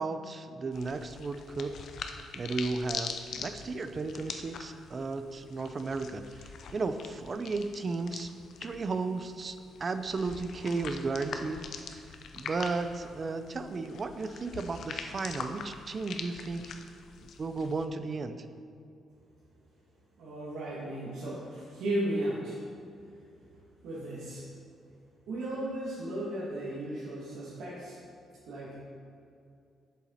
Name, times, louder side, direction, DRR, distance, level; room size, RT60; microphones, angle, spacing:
voice 1, 0.0-1.8 2.3-8.3 8.6-12.1 12.3-16.7 17.2-18.4, right 3 dB, 30° right, 10 dB, 0.5 m, -34 dB
sound 1, 0.7-17.9, left 6 dB, 55° left, 0.7 m, -43 dB
voice 2, 20.2-22.6 23.8-24.5 25.3-28.0 28.4-28.9, right 1 dB, 85° right, -9 dB, 2.3 m, -35 dB
11.5 x 7.3 x 4.2 m, 2.5 s
cardioid pair, 160°, 0 cm